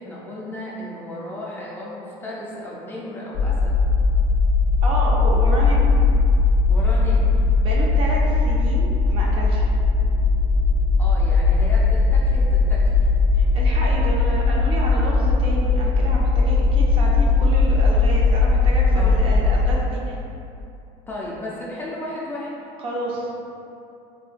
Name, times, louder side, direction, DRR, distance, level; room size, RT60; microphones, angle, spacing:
voice 1, 0.0-3.8 6.7-7.4 11.0-13.1 18.9-19.2 21.1-22.5, left 1 dB, 15° left, -6 dB, 0.4 m, -34 dB
sound 1, 3.3-19.8, left 3 dB, 90° left, 0.5 m, -18 dB
voice 2, 4.8-5.9 7.6-9.7 13.4-20.2 22.8-23.4, right 1 dB, 40° right, -3 dB, 0.5 m, -30 dB
3.6 x 2.2 x 2.4 m, 2.7 s
cardioid pair, 135°, 14 cm